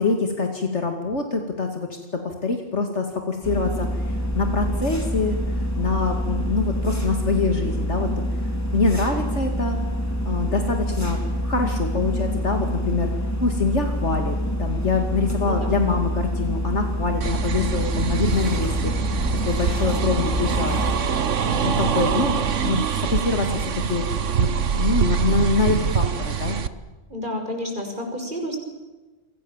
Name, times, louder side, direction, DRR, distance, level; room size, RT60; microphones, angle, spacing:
voice 1, 0.0-8.1 8.4-9.8 10.2-13.1 13.4-20.9 21.5-24.0 24.4-26.6, left 4 dB, 70° left, 4 dB, 2.7 m, -25 dB
sound 1, 3.4-21.0, equal, 15° left, 3.5 m, -26 dB
sound 2, 17.2-26.7, right 7 dB, 80° right, 1.5 m, -24 dB
voice 2, 27.1-28.6, left 1 dB, 40° right, 3 dB, 6.4 m, -30 dB
30.0 x 24.5 x 7.4 m, 1.2 s
omnidirectional pair, 1.3 m